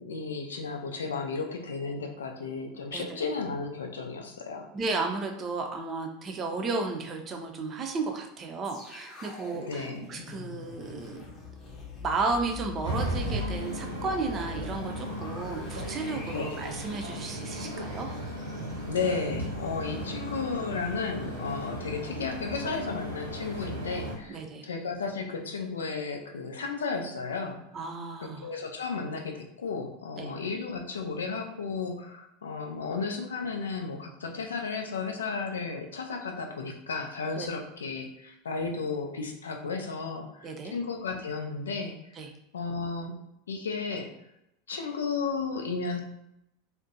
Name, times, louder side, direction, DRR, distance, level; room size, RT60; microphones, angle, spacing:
voice 1, 0.0-4.7 9.5-10.0 16.3-16.5 18.8-27.6 28.2-42.0 42.5-43.2 43.5-44.1 44.7-46.0, left 4 dB, 75° left, 4 dB, 0.4 m, -34 dB
voice 2, 4.7-11.2 12.0-18.1 24.3-24.7 27.7-28.5 30.2-30.3 37.4-37.5 40.4-40.7 42.2-42.3, right 3 dB, 30° right, 3 dB, 0.5 m, -33 dB
sound 1, 8.6-19.8 20.2-20.3, left 3 dB, 35° left, 0.7 m, -43 dB
sound 2, 12.8-24.1, right 1 dB, 85° right, 0.8 m, -36 dB
2.5 x 2.1 x 2.6 m, 0.82 s
figure-of-eight pair, 80°, 0 cm